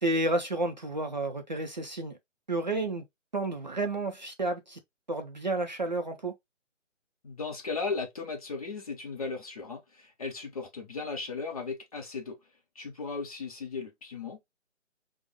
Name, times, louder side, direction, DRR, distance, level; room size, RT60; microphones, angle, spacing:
voice 1, 0.0-2.2 2.5-3.1 3.3-4.8 5.1-6.4, right 2 dB, 40° right, 0.4 m, -31 dB
voice 2, 7.2-12.4 12.8-14.4, left 4 dB, 30° left, 0.7 m, -36 dB
4.9 x 2.1 x 2.8 m
figure-of-eight pair, 145°, 38 cm